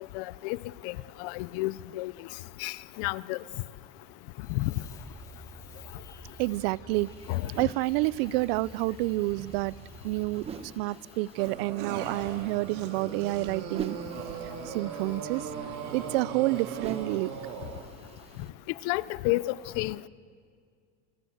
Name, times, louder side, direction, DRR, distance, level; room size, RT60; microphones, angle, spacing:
voice 1, 0.1-0.6 0.8-2.1 2.6-3.4 4.5-4.7 7.3-7.5 18.8-20.0, left 20 dB, 65° left, 0.6 m, -31 dB
sound 1, 4.4-10.4, equal, 10° left, 2.4 m, -49 dB
voice 2, 6.4-7.1 7.6-9.7 10.0-10.5 10.8-14.0 14.7-15.4 15.9-17.3, right 20 dB, 70° right, 0.5 m, -28 dB
sound 2, 6.9-18.5, right 7 dB, 20° right, 0.6 m, -46 dB
sound 3, 11.4-18.0, right 6 dB, 55° right, 2.6 m, -38 dB
28.5 x 18.0 x 7.9 m
cardioid pair, 165°, 31 cm